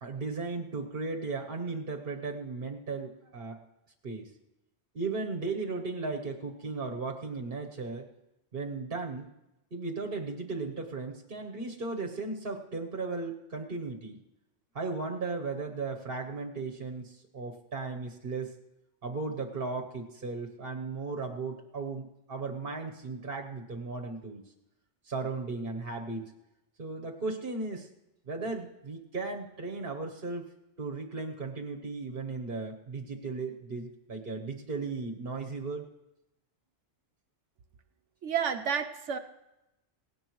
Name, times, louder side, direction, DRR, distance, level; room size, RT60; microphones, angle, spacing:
voice 1, 0.0-3.6 4.0-4.3 4.9-8.1 8.5-9.3 9.7-14.2 14.7-18.5 19.0-24.4 25.0-26.2 26.8-27.9 28.2-30.4 30.8-35.9, right 3 dB, 50° right, 2 dB, 1.3 m, -36 dB
voice 2, 38.2-39.2, right 7 dB, 90° right, 7 dB, 1.2 m, -30 dB
17.5 x 17.5 x 3.1 m, 0.93 s
omnidirectional pair, 1.2 m